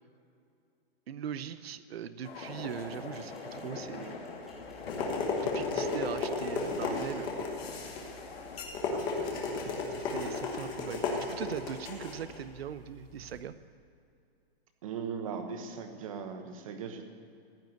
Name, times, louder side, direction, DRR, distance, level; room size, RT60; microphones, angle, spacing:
voice 1, 1.1-4.2 5.3-7.5 9.9-13.5, right 9 dB, 80° right, 13 dB, 0.7 m, -40 dB
sound 1, 2.2-8.6, left 4 dB, 75° left, 2.9 m, -41 dB
sound 2, 2.7-7.9, left 2 dB, ahead, 2.2 m, -60 dB
sound 3, 4.5-13.4, left 4 dB, 15° left, 1.2 m, -35 dB
voice 2, 8.9-9.3 9.6-9.8 14.8-17.0, right 6 dB, 35° right, 7 dB, 1.2 m, -39 dB
15.0 x 7.6 x 9.2 m, 2.5 s
hypercardioid pair, 175°, 30 cm